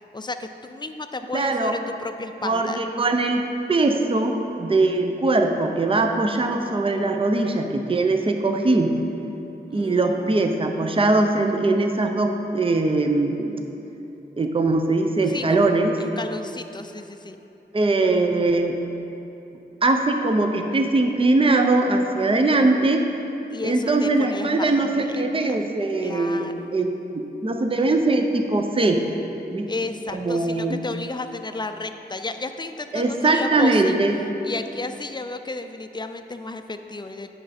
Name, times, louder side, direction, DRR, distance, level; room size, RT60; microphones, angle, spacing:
voice 1, 0.1-2.8 9.7-10.3 15.3-17.4 23.5-25.2 25.5-25.6 26.0-26.7 29.7-34.0 34.4-37.3, left 3 dB, 25° left, 8 dB, 0.4 m, -33 dB
voice 2, 1.3-1.8 2.4-3.4 3.7-8.9 9.7-13.6 14.4-16.0 17.7-18.8 19.8-23.1 23.6-29.0 29.5-29.7 30.1-30.8 32.9-34.2, right 2 dB, 30° right, 4 dB, 0.6 m, -21 dB
8.5 x 6.6 x 4.2 m, 2.9 s
wide cardioid pair, 85°, 18 cm